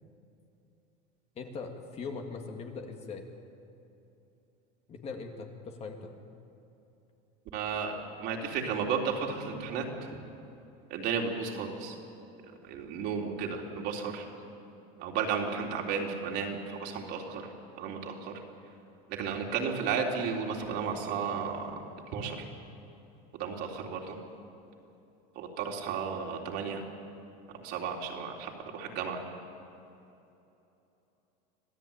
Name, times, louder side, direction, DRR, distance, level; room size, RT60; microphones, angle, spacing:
voice 1, 1.4-3.3 4.9-6.2, left 4 dB, 30° left, 3 dB, 2.5 m, -40 dB
voice 2, 7.5-9.9 10.9-12.0 12.6-14.3 15.0-17.5 17.8-18.4 19.1-21.8 22.1-22.5 23.3-24.2 25.4-26.8 27.5-29.2, right 6 dB, 55° right, 1 dB, 3.7 m, -33 dB
26.0 x 16.5 x 9.1 m, 2.9 s
supercardioid pair, 135°, 21 cm